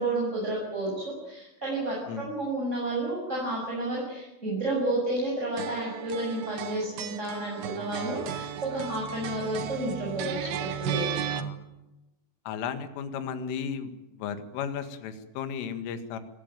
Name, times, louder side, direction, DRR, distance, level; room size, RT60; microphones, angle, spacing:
voice 1, 0.0-11.1, right 2 dB, 15° right, -4 dB, 7.4 m, -31 dB
sound 1, 5.6-11.4, right 9 dB, 65° right, 2.7 m, -35 dB
voice 2, 12.5-13.9 14.2-16.2, left 7 dB, 80° left, 9 dB, 4.4 m, -34 dB
26.5 x 19.0 x 9.2 m, 0.96 s
omnidirectional pair, 5.8 m